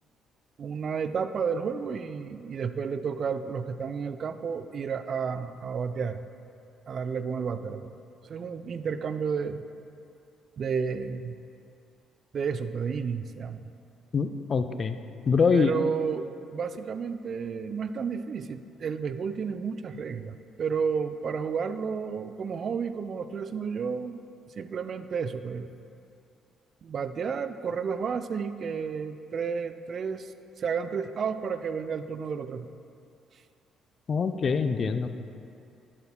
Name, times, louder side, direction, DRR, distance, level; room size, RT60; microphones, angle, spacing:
voice 1, 0.6-6.2 6.9-7.9 8.2-9.6 10.6-11.4 12.3-13.6 15.5-25.7 26.8-30.3 30.6-32.7, right 6 dB, 50° right, 11 dB, 0.4 m, -31 dB
voice 2, 14.1-15.0 15.3-15.8 34.1-35.1, left 5 dB, 45° left, 9 dB, 0.4 m, -24 dB
11.5 x 8.7 x 2.2 m, 2.6 s
hypercardioid pair, 45°, 0 cm